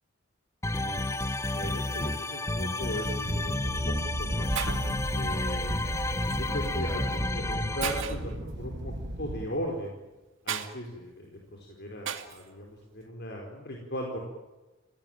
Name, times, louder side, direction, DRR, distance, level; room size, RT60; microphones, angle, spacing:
voice 1, 0.6-4.6 5.1-5.8 6.3-10.0 10.4-14.2, equal, 55° left, 1 dB, 4.7 m, -38 dB
sound 1, 0.6-8.0, left 2 dB, 15° left, 0.8 m, -31 dB
sound 2, 3.2-9.5, right 1 dB, 60° right, 2.3 m, -35 dB
Shatter, 3.3-3.5 4.2-4.3 4.6-5.0 6.3-6.5 7.1-7.2 7.8-8.3 10.5-10.7 12.1-12.4, right 8 dB, 75° right, 2.4 m, -34 dB
29.5 x 18.0 x 9.1 m, 1.1 s
head